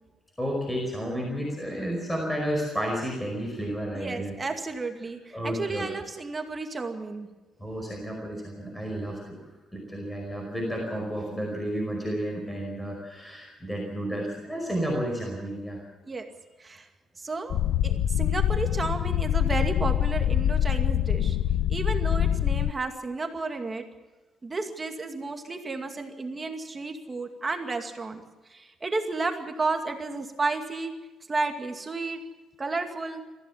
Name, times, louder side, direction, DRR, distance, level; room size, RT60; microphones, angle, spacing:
voice 1, 0.4-4.3 5.3-5.9 7.6-9.4 9.7-15.8, equal, 5° left, -1 dB, 5.0 m, -31 dB
voice 2, 3.9-7.3 16.1-16.3 16.6-16.9 17.2-21.4 21.7-23.8 24.4-28.2 28.5-30.9 31.3-32.2 32.6-33.2, right 3 dB, 20° right, 5 dB, 2.3 m, -32 dB
sound 1, 17.5-22.7, left 10 dB, 70° left, 0.7 m, -25 dB
23.5 x 15.5 x 7.2 m, 1.2 s
cardioid pair, 145°, 0 cm